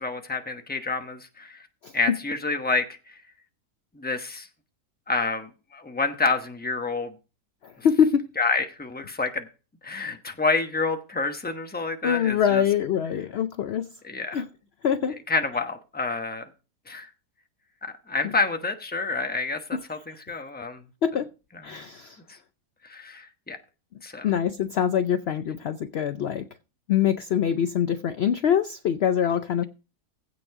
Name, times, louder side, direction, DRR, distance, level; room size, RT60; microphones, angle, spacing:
voice 1, 0.0-1.6 1.9-2.8 4.0-4.5 5.1-7.1 8.4-9.4 9.8-12.6 14.0-14.4 15.3-16.4 16.9-17.1 17.8-20.8 21.7-21.8 22.9-23.6 24.0-24.3, left 3 dB, 5° left, 0.8 m, -28 dB
voice 2, 1.8-2.2 7.6-8.3 12.0-13.9 14.3-14.5 14.8-15.2 18.2-18.3 19.7-19.8 21.0-21.3 21.6-22.2 24.2-26.5 26.9-29.6, left 8 dB, 65° left, 0.6 m, -24 dB
15.5 x 5.3 x 4.8 m
omnidirectional pair, 1.7 m